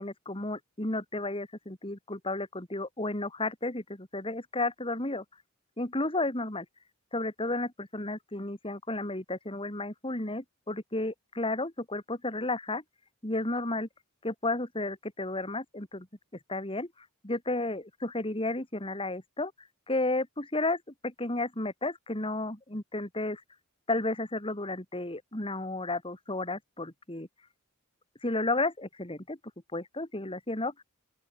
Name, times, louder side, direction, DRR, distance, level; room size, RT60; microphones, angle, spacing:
voice 1, 0.0-5.2 5.8-6.6 7.1-12.8 13.2-13.9 14.2-16.1 16.5-16.9 17.2-19.5 19.9-23.4 23.9-27.3 28.2-29.4 29.7-30.8, left 2 dB, 25° left, 3.0 m, -32 dB
open air
head